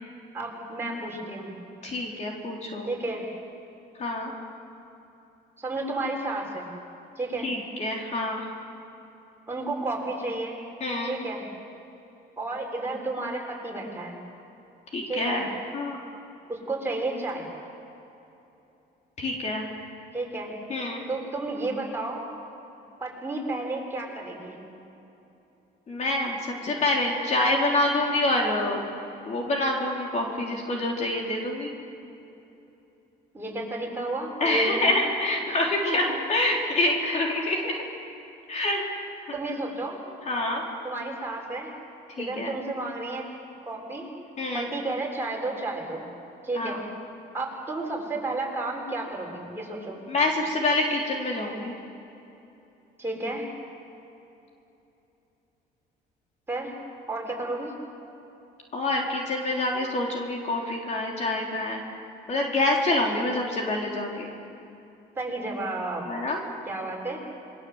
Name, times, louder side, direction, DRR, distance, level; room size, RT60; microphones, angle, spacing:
voice 1, 0.3-1.5 2.9-3.2 5.6-6.7 7.2-7.5 9.5-10.6 11.0-11.4 12.4-14.2 15.1-15.4 16.5-17.5 20.1-20.5 21.1-22.3 23.0-24.6 33.3-34.9 35.8-36.0 39.3-40.0 40.8-41.7 42.2-43.3 43.6-44.1 44.5-46.1 46.4-46.8 47.3-50.0 53.0-53.5 56.5-56.7 57.1-57.7 65.2-66.1 66.7-67.2, right 2 dB, 15° right, -2 dB, 6.8 m, -32 dB
voice 2, 1.8-2.9 4.0-4.3 7.4-8.5 10.8-11.1 14.9-15.5 15.7-16.0 19.2-19.6 20.7-21.0 25.9-28.8 29.3-31.7 34.4-37.8 38.5-38.8 39.2-39.3 40.3-40.6 42.2-42.5 44.4-44.7 46.5-46.8 50.1-51.7 58.7-61.8 62.3-64.3 66.1-66.4, left 2 dB, 40° left, 0 dB, 3.8 m, -26 dB
26.5 x 23.0 x 8.0 m, 2.9 s
cardioid pair, 110°, 17 cm